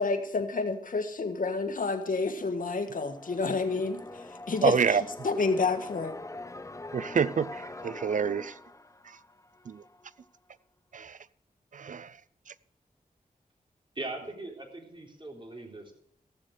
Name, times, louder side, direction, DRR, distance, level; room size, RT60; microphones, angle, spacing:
voice 1, 0.0-5.0 5.2-6.1, left 4 dB, 70° left, 1.7 m, -29 dB
sound 1, 2.3-10.1, left 2 dB, 20° left, 0.8 m, -44 dB
voice 2, 4.6-5.0 6.9-8.5 9.7-9.8 10.9-11.2 11.7-12.1, right 6 dB, 60° right, 0.5 m, -27 dB
voice 3, 14.0-15.9, right 2 dB, 35° right, 3.7 m, -40 dB
15.5 x 7.4 x 6.5 m
cardioid pair, 55°, 15 cm